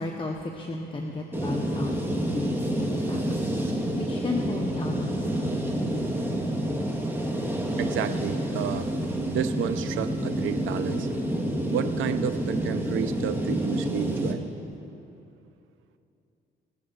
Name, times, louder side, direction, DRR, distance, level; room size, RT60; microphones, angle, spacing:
voice 1, 0.0-3.4 4.0-5.6, left 2 dB, 25° left, 1 dB, 1.0 m, -34 dB
sound 1, 1.3-14.3, right 1 dB, 10° right, 1.6 m, -28 dB
voice 2, 7.8-8.9 9.2-11.1 11.7-14.4, right 9 dB, 80° right, 11 dB, 0.6 m, -31 dB
22.5 x 7.6 x 4.0 m, 2.8 s
cardioid pair, 90°, 20 cm